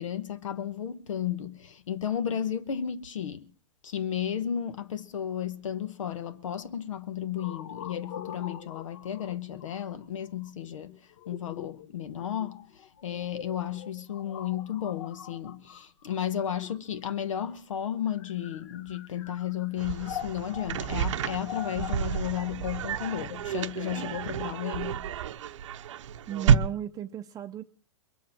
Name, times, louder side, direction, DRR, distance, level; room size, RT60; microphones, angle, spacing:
voice 1, 0.0-3.4 3.8-11.0 11.3-12.6 13.0-25.0, left 9 dB, 80° left, 1.2 m, -33 dB
sound 1, 7.4-17.2 18.0-24.9, left 10 dB, 55° left, 1.4 m, -44 dB
sound 2, 19.8-26.6, right 8 dB, 70° right, 0.8 m, -29 dB
voice 2, 26.3-27.6, right 10 dB, 20° right, 0.6 m, -35 dB
22.0 x 7.5 x 7.4 m
hypercardioid pair, 130°, 16 cm